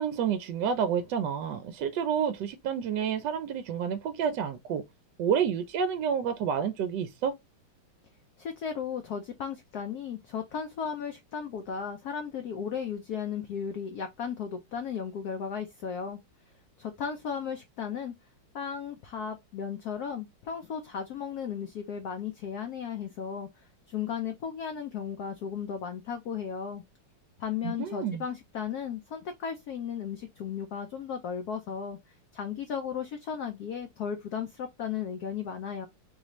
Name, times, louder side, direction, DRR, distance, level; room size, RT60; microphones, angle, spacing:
voice 1, 0.0-4.8 5.2-7.3 27.6-28.2, right 7 dB, 75° right, 1.1 m, -29 dB
voice 2, 8.4-16.2 16.8-18.1 18.5-26.8 27.4-35.9, left 7 dB, 70° left, 1.0 m, -35 dB
4.0 x 3.1 x 3.0 m
omnidirectional pair, 2.2 m